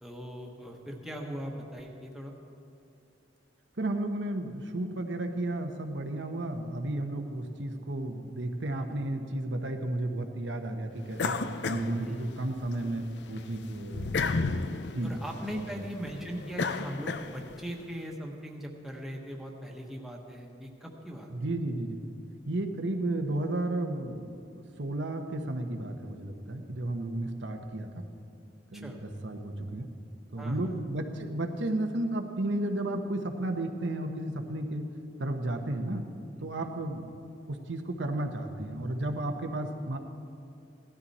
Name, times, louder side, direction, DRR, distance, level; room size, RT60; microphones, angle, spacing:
voice 1, 0.0-2.3 12.0-12.3 15.0-21.3 28.7-29.0 30.4-30.8 36.5-36.7, equal, ahead, 0 dB, 1.2 m, -40 dB
voice 2, 3.8-11.4 11.6-14.1 14.9-15.1 15.5-15.7 21.3-22.0 22.5-24.4 24.8-27.9 28.7-29.9 30.3-34.8 35.2-36.1 36.4-37.0 37.5-40.0, right 1 dB, 85° right, 4 dB, 1.0 m, -33 dB
sound 1, 11.2-12.7 13.1-17.7, left 4 dB, 70° left, 0.5 m, -33 dB
16.5 x 12.5 x 4.2 m, 2.5 s
head